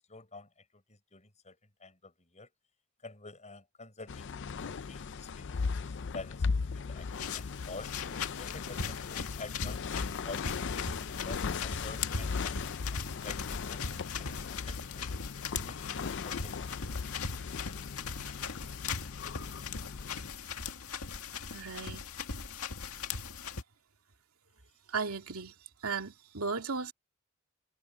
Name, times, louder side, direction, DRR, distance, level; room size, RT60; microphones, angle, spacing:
voice 1, 0.1-1.5 1.8-2.5 3.0-4.3 4.6-5.6 5.9-7.9 8.4-10.8 11.2-12.5 12.8-13.8 14.2-15.1 15.6-16.7, left 3 dB, 30° left, 6.8 m, -48 dB
sound 1, 4.1-20.3, left 5 dB, 55° left, 0.5 m, -38 dB
sound 2, 7.1-23.6, left 5 dB, 85° left, 1.8 m, -39 dB
voice 2, 21.5-22.0 24.9-25.5 25.8-26.9, right 5 dB, 85° right, 2.7 m, -35 dB
head